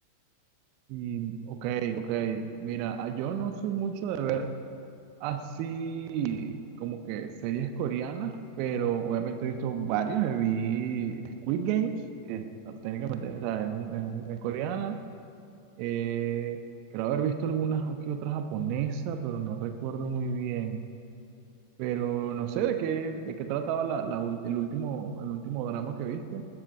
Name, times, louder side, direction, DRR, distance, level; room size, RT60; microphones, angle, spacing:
voice 1, 0.9-4.5 5.2-15.0 15.8-16.6 16.9-20.8 21.8-26.4, right 8 dB, 45° right, 8 dB, 1.1 m, -31 dB
21.0 x 12.5 x 4.9 m, 2.8 s
figure-of-eight pair, 90°, 0 cm